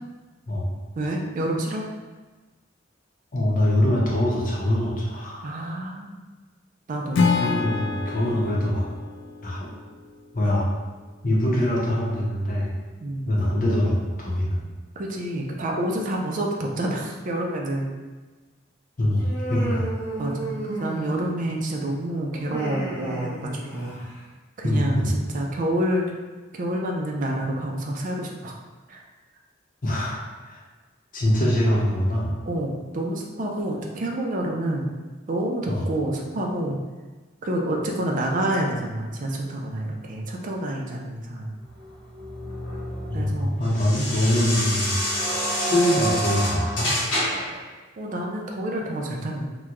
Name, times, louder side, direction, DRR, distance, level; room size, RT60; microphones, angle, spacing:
voice 1, 0.9-1.8 5.4-6.2 6.9-7.3 13.0-13.3 15.0-17.9 20.2-24.0 24.6-26.0 26.5-28.6 28.9-29.0 32.5-34.9 35.3-36.8 37.4-41.5 43.1-44.2 48.0-49.5, right 1 dB, 45° right, 0 dB, 0.4 m, -28 dB
voice 2, 3.3-5.4 7.3-8.9 9.4-9.7 10.3-10.7 11.2-12.7 13.2-14.6 19.0-19.9 24.6-25.1 29.8-30.6 31.1-32.3 35.7-35.8 43.1-44.9 45.6-46.9, left 1 dB, 45° left, -4 dB, 0.8 m, -23 dB
Acoustic guitar / Strum, 7.1-10.3, left 4 dB, 65° left, 0.3 m, -27 dB
Human voice, 19.2-21.4 22.3-24.2, right 1 dB, 15° left, 0.7 m, -33 dB
sound 1, 41.7-47.6, equal, 85° left, 1.3 m, -28 dB
2.9 x 2.1 x 3.6 m, 1.3 s
head